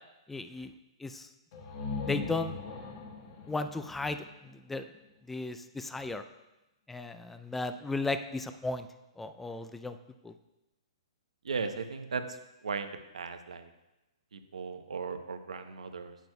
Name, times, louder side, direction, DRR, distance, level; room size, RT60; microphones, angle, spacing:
voice 1, 0.3-0.7 1.0-1.3 2.0-2.6 3.5-4.9 5.3-6.2 6.9-8.9 9.2-10.0 10.2-10.3, left 3 dB, 5° left, 9 dB, 0.3 m, -35 dB
sound 1, 1.5-5.2, left 4 dB, 45° left, 1.2 m, -40 dB
voice 2, 11.4-12.4 12.6-13.7 14.3-16.2, right 5 dB, 90° right, 8 dB, 0.8 m, -37 dB
9.2 x 9.1 x 2.3 m, 0.97 s
hypercardioid pair, 145°, 3 cm